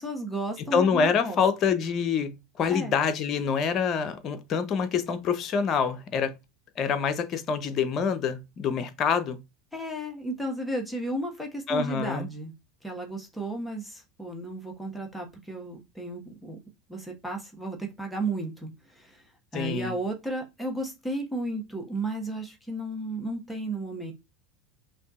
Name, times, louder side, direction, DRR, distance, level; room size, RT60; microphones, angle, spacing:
voice 1, 0.0-1.4 2.7-2.9 9.7-12.5 12.8-16.6 16.9-19.2 19.5-24.1, right 1 dB, ahead, 1.4 m, -33 dB
voice 2, 0.6-6.3 6.8-9.4 11.7-12.3 19.5-19.9, left 6 dB, 45° left, 0.7 m, -26 dB
5.2 x 2.7 x 2.4 m
hypercardioid pair, 85°, 0 cm